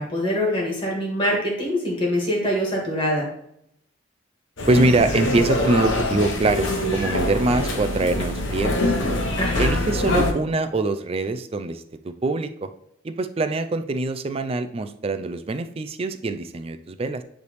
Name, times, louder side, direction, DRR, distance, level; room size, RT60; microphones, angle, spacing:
voice 1, 0.0-3.3 9.4-9.7, equal, 25° left, -2 dB, 1.9 m, -24 dB
sound 1, 4.6-10.3, left 1 dB, 80° left, 1.0 m, -24 dB
voice 2, 4.7-8.9 9.6-12.7 13.0-17.2, right 2 dB, 30° right, 10 dB, 0.4 m, -24 dB
9.4 x 3.3 x 3.1 m, 0.73 s
head